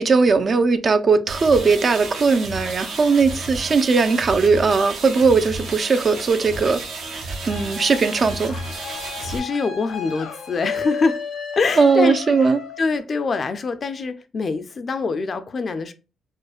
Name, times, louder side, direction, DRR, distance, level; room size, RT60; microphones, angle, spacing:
voice 1, 0.0-6.8 7.5-8.6 11.8-12.6, right 4 dB, 40° right, 0.4 m, -18 dB
sound 1, 1.3-9.4, right 2 dB, 75° right, 1.0 m, -32 dB
sound 2, 7.5-13.0, left 7 dB, 70° left, 0.7 m, -33 dB
voice 2, 9.2-11.2 11.6-15.9, left 4 dB, 40° left, 0.4 m, -25 dB
4.9 x 2.1 x 2.4 m
cardioid pair, 90°, 0 cm